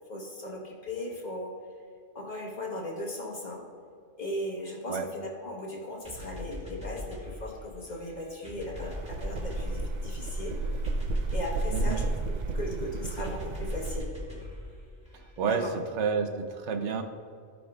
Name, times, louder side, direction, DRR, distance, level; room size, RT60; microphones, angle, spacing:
voice 1, 0.1-1.5 2.1-3.6 4.2-10.6 11.3-14.1 15.4-15.7, left 1 dB, 40° left, -1 dB, 1.2 m, -37 dB
sound 1, 6.0-15.6, left 1 dB, 5° right, 1.8 m, -43 dB
sound 2, 8.7-14.0, right 2 dB, 55° right, 0.5 m, -32 dB
voice 2, 11.7-12.0 15.1-15.6 15.9-17.0, right 6 dB, 75° right, 6 dB, 1.0 m, -30 dB
15.0 x 5.2 x 2.4 m, 2.3 s
omnidirectional pair, 1.2 m